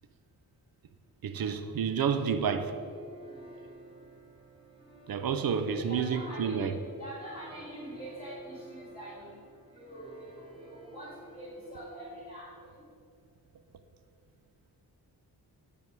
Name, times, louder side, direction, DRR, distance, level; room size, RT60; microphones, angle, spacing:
voice 1, 1.2-2.8 5.1-6.7, right 7 dB, 65° right, 0.6 m, -29 dB
sound 1, 1.9-12.4, right 1 dB, 15° right, 1.2 m, -51 dB
voice 2, 5.7-9.4 9.7-12.7, right 1 dB, 20° left, 2.1 m, -45 dB
10.5 x 3.6 x 6.1 m
wide cardioid pair, 120°, 39 cm